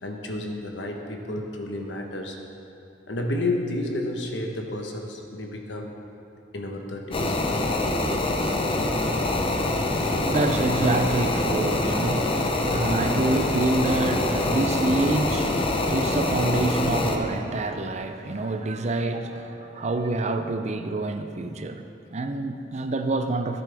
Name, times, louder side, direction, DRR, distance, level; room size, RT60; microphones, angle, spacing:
voice 1, 0.0-2.4 3.1-5.9 6.5-7.4 10.5-10.6, left 1 dB, 70° left, 3 dB, 1.1 m, -31 dB
sound 1, 7.1-17.2, left 2 dB, 30° left, 0.7 m, -25 dB
voice 2, 9.8-21.9 22.1-23.6, right 2 dB, 40° right, 7 dB, 0.5 m, -27 dB
14.0 x 9.0 x 3.5 m, 2.7 s
head